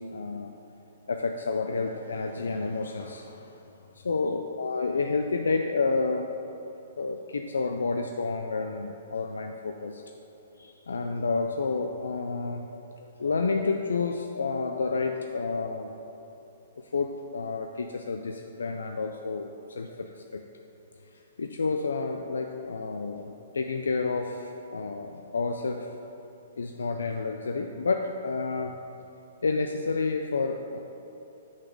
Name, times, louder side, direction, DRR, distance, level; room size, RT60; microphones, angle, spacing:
voice 1, 0.1-0.5 1.1-3.6 4.0-6.4 7.0-10.0 10.6-16.0 16.8-20.4 21.1-25.9 26.6-28.8 29.4-30.8, left 4 dB, 85° left, 4 dB, 0.4 m, -30 dB
6.1 x 4.1 x 6.1 m, 2.9 s
hypercardioid pair, 135°, 0 cm